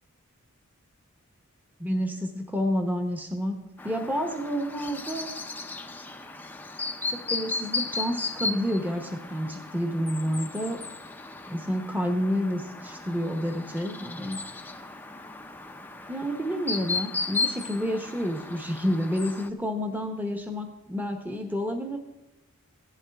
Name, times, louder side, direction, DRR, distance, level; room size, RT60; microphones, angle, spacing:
voice 1, 1.8-3.6 3.8-5.3 7.1-10.8 11.4-14.4 16.1-22.0, equal, 10° right, 4 dB, 1.0 m, -29 dB
Chirp tweet, 3.8-19.5, left 3 dB, 10° left, 0.6 m, -35 dB
16.0 x 11.5 x 3.5 m, 1.0 s
head